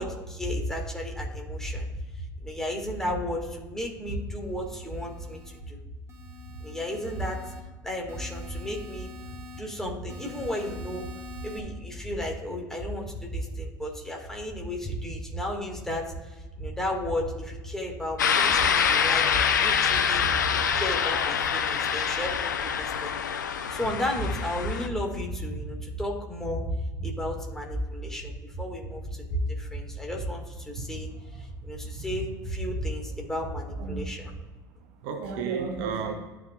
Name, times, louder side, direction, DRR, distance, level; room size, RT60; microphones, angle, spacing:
voice 1, 0.0-1.9 2.4-5.4 5.7-5.8 6.6-7.4 7.8-9.1 9.5-11.1 11.4-16.0 16.6-23.1 23.7-34.3, equal, 5° left, -1 dB, 2.0 m, -33 dB
sound 1, 4.5-5.6 6.1-7.6 8.1-9.6 10.1-11.6, left 4 dB, 25° right, 1.3 m, -46 dB
sound 2, 18.2-24.9, left 7 dB, 75° left, 0.5 m, -25 dB
voice 2, 35.0-36.1, right 6 dB, 55° right, 5 dB, 0.9 m, -32 dB
13.0 x 4.5 x 2.4 m, 1.1 s
figure-of-eight pair, 70°, 10 cm